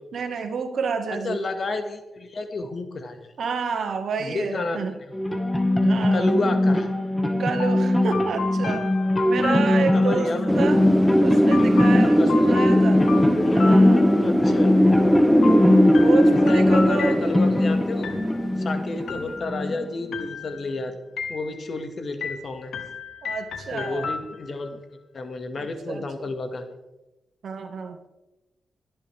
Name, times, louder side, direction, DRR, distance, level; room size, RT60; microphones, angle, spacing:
voice 1, 0.1-1.4 3.4-5.0 5.8-6.3 7.4-8.9 9.3-10.8 11.2-13.1 13.5-14.1 15.5-17.2 23.2-24.1 25.5-26.3 27.4-28.0, right 5 dB, 75° right, 5 dB, 1.8 m, -30 dB
voice 2, 1.1-3.2 4.2-5.1 6.1-6.9 9.9-10.6 12.0-12.9 13.4-13.6 14.2-14.7 16.3-18.1 18.6-20.9 21.3-22.7 23.7-24.8 25.1-26.7, left 3 dB, 55° left, 6 dB, 1.9 m, -30 dB
sound 1, 5.1-20.1, left 1 dB, 15° left, 1.7 m, -22 dB
sound 2, 7.6-10.3 11.5-14.5 15.4-17.6 18.0-18.6 19.1-19.8 20.1-20.8 21.2-21.8 22.2-24.7, left 4 dB, 80° left, 1.5 m, -34 dB
Wind, 10.5-19.2, equal, ahead, 0.7 m, -20 dB
26.0 x 10.0 x 3.5 m, 1.0 s
cardioid pair, 70°, 0 cm